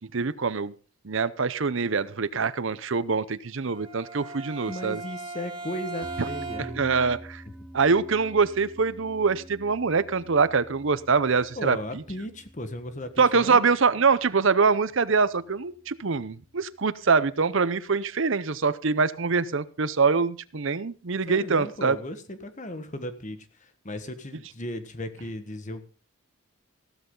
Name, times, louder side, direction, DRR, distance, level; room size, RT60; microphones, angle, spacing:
voice 1, 0.1-0.7 1.0-5.0 6.2-6.3 6.7-7.4 7.7-12.0 13.2-22.0, right 5 dB, 60° right, 16 dB, 0.7 m, -24 dB
Bowed string instrument, 3.6-7.0, right 3 dB, 25° right, 2.1 m, -38 dB
voice 2, 4.7-6.9 11.5-13.6 21.3-25.8, left 1 dB, 35° left, 10 dB, 1.4 m, -36 dB
sound 1, 6.0-16.5, right 1 dB, 5° left, 3.1 m, -47 dB
15.0 x 13.5 x 3.8 m, 0.34 s
head